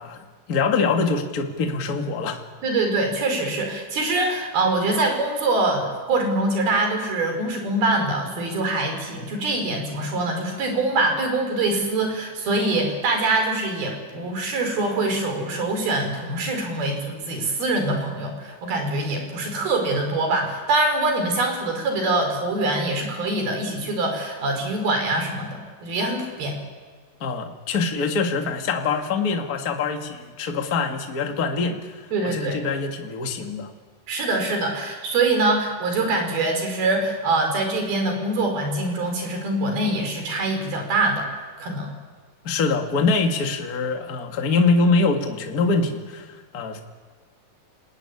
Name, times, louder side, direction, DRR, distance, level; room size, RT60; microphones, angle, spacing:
voice 1, 0.0-2.4 27.2-33.7 42.4-46.8, left 4 dB, 30° left, 3 dB, 1.8 m, -24 dB
voice 2, 2.6-26.6 32.1-32.6 34.1-41.3 41.6-41.9, right 2 dB, 70° right, 4 dB, 6.6 m, -24 dB
27.0 x 19.5 x 9.8 m, 1.5 s
omnidirectional pair, 4.4 m